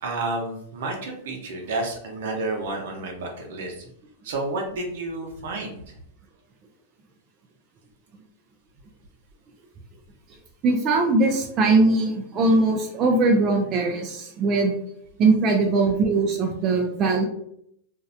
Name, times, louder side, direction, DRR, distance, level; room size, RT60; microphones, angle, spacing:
voice 1, 0.0-3.9 4.2-5.9, right 2 dB, 70° right, 1 dB, 0.7 m, -30 dB
voice 2, 10.6-14.7 15.2-17.2, right 3 dB, 30° right, 1 dB, 0.3 m, -20 dB
2.5 x 2.0 x 2.6 m, 0.70 s
supercardioid pair, 145°, 0 cm